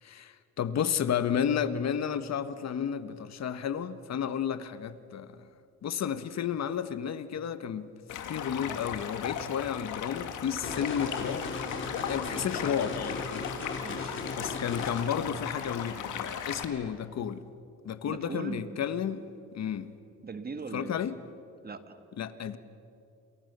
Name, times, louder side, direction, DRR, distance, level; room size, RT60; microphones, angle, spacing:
voice 1, 0.0-5.4 5.8-7.9 8.3-11.5 12.1-13.9 14.4-17.4 17.8-19.2 19.5-19.9 20.7-21.2 22.2-22.6, left 8 dB, 60° left, 12 dB, 1.5 m, -32 dB
Stream, 8.1-16.6, left 8 dB, 80° left, 2.6 m, -37 dB
sound 1, 10.6-15.0, left 3 dB, 40° left, 5.3 m, -37 dB
voice 2, 13.7-14.2 18.0-18.6 20.2-21.0 21.6-22.1, right 4 dB, 30° right, 10 dB, 1.8 m, -40 dB
28.5 x 28.5 x 6.9 m, 2.6 s
cardioid pair, 90°, 30 cm